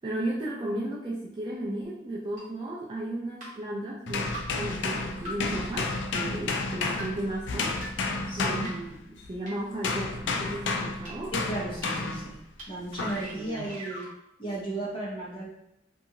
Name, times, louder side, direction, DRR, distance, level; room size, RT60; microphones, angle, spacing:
voice 1, 0.0-4.3 4.5-7.7 8.4-11.3 13.4-13.8, right 1 dB, 25° right, -4 dB, 0.3 m, -34 dB
sound 1, 2.4-2.5 3.4-3.5 4.3-4.4 5.3-5.4 6.1-6.2 7.0-7.1 7.8-7.9 8.6-8.7 9.5-9.6 10.3-10.4 11.1-11.2 11.8-11.9 12.6-12.7 12.9-14.1, right 1 dB, 40° right, 1.1 m, -39 dB
sound 2, 4.1-9.3 9.8-12.3 13.0-13.3, left 3 dB, 75° left, 0.3 m, -31 dB
voice 2, 8.3-8.7 11.3-12.4 12.7-14.0 14.4-15.5, right 2 dB, 25° left, -7 dB, 1.0 m, -35 dB
2.7 x 2.5 x 2.7 m, 0.81 s
head